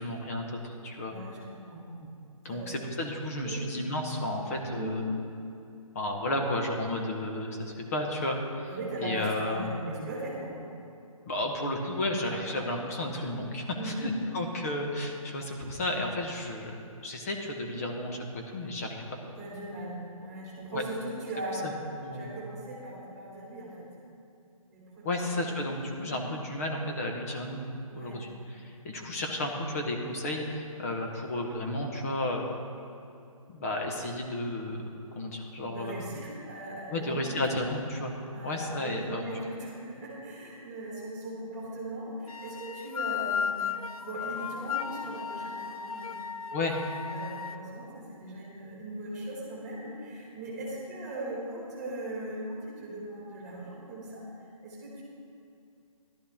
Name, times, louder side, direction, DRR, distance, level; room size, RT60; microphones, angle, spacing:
voice 1, 0.0-1.1 2.4-5.0 5.9-8.7 9.0-9.7 11.2-16.7 17.0-19.2 20.7-20.9 21.6-21.7 22.0-22.4 25.0-27.6 27.9-32.4 33.5-34.8 35.1-36.1 36.9-38.1 38.4-39.2 46.5-46.8, left 1 dB, 25° left, 1 dB, 1.2 m, -32 dB
voice 2, 1.0-1.4 1.7-1.9 2.5-2.7 3.4-3.6 4.7-4.9 8.7-10.5 12.2-12.5 13.7-14.1 19.4-21.7 22.1-23.9 24.7-26.2 27.9-28.2 35.6-37.6 38.3-43.7 44.0-46.2 47.1-54.2 54.6-55.0, right 1 dB, 5° right, -7 dB, 2.9 m, -39 dB
sound 1, 42.3-47.6, left 7 dB, 75° left, 0.7 m, -35 dB
14.0 x 12.0 x 3.6 m, 2.6 s
hypercardioid pair, 170°, 19 cm